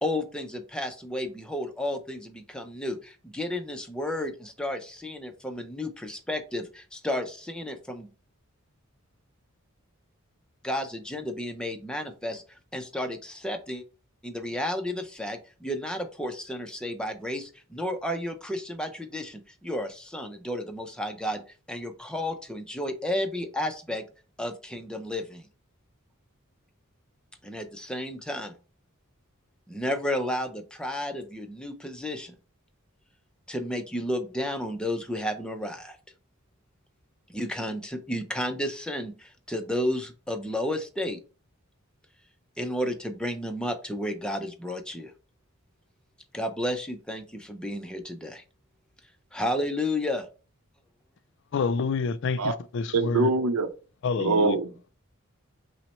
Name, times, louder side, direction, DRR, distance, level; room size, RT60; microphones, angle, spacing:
voice 1, 0.0-8.1 10.6-13.8 14.2-21.4 21.7-24.0 24.4-25.5 27.4-28.5 29.7-32.3 33.5-36.0 37.3-41.2 42.6-45.1 46.3-48.4 49.3-50.3, left 1 dB, 5° left, 0.5 m, -32 dB
voice 2, 51.5-53.3 54.0-54.6, left 4 dB, 55° left, 0.4 m, -28 dB
voice 3, 52.9-53.7 54.2-54.7, right 3 dB, 90° right, 0.6 m, -23 dB
5.8 x 2.1 x 4.2 m
head